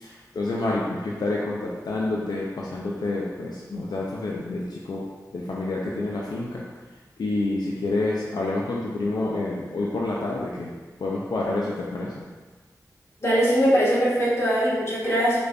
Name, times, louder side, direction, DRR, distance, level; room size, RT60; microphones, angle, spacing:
voice 1, 0.0-5.1 5.3-6.6 7.2-10.7 11.0-12.2, left 2 dB, 85° left, -4 dB, 0.4 m, -28 dB
voice 2, 13.2-15.4, equal, 40° left, -7 dB, 1.3 m, -21 dB
4.8 x 2.5 x 2.2 m, 1.3 s
cardioid pair, 50°, 7 cm